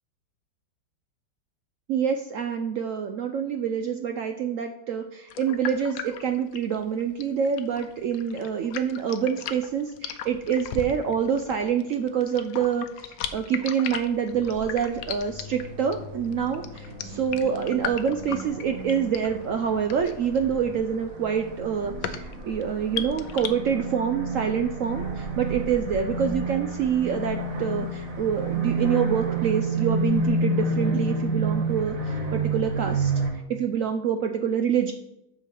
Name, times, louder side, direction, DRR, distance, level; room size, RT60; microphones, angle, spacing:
voice 1, 1.9-33.1 33.5-34.9, right 7 dB, 80° right, 6 dB, 0.7 m, -26 dB
sound 1, 5.3-23.5, left 9 dB, 90° left, 1.4 m, -37 dB
sound 2, 14.3-33.3, right 2 dB, 50° right, 1.8 m, -30 dB
8.0 x 4.8 x 6.8 m, 0.86 s
omnidirectional pair, 2.0 m